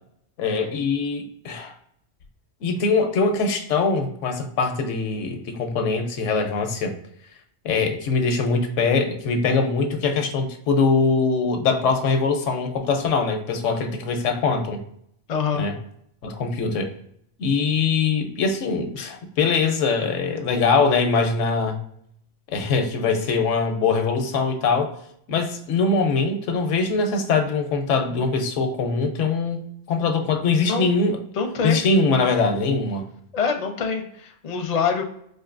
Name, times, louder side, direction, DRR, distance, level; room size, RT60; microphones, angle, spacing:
voice 1, 0.4-1.7 2.6-6.9 7.6-14.8 15.5-15.7 16.2-16.9 17.4-21.8 22.5-24.9 25.3-29.6 29.9-31.2 31.6-33.1, left 4 dB, 85° left, 5 dB, 1.0 m, -22 dB
voice 2, 15.3-15.7 30.6-30.9 31.3-31.8 33.3-35.0, left 5 dB, 45° left, 3 dB, 0.5 m, -25 dB
4.4 x 2.6 x 2.4 m, 0.70 s
omnidirectional pair, 1.2 m